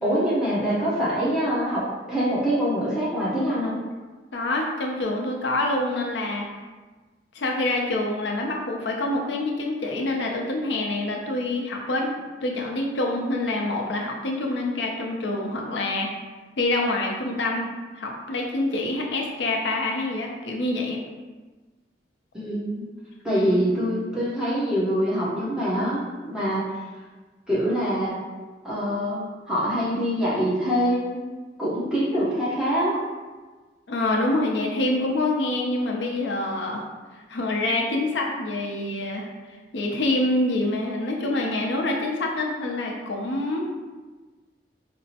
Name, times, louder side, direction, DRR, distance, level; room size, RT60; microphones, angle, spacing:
voice 1, 0.0-3.8 22.3-22.8 23.2-26.8 27.5-28.2 28.6-31.3 31.6-33.0, equal, 5° right, -9 dB, 0.8 m, -24 dB
voice 2, 4.3-6.5 7.3-16.1 16.6-17.7 18.0-21.0 23.3-23.7 33.9-36.8 37.1-39.3 39.7-43.7, left 2 dB, 85° left, 0 dB, 0.6 m, -26 dB
4.3 x 2.0 x 2.8 m, 1.3 s
head